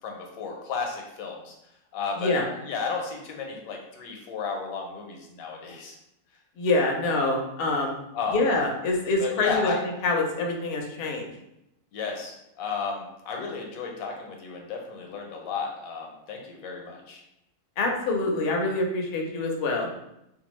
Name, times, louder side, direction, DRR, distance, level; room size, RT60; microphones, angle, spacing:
voice 1, 0.0-1.5 1.9-6.0 8.1-8.4 9.2-9.8 11.9-17.2, left 5 dB, 85° left, 1 dB, 1.1 m, -33 dB
voice 2, 6.6-8.0 8.3-9.7 10.0-11.3 17.8-19.9, left 2 dB, 60° left, 1 dB, 0.6 m, -25 dB
2.6 x 2.2 x 3.0 m, 0.84 s
omnidirectional pair, 1.4 m